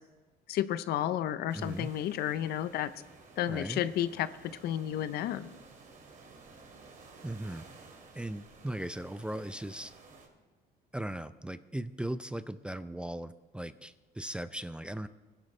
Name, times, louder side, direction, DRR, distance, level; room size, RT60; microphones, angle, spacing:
voice 1, 0.5-2.9 3.4-4.3 4.6-5.5, left 11 dB, 70° left, 14 dB, 0.6 m, -31 dB
voice 2, 1.5-1.9 3.5-3.8 7.2-7.6 8.1-9.9 10.9-15.1, right 1 dB, 5° right, 13 dB, 0.4 m, -38 dB
sound 1, 1.5-10.3, right 4 dB, 50° right, 2.5 m, -54 dB
20.5 x 11.0 x 3.2 m, 1.3 s
cardioid pair, 110°, 17 cm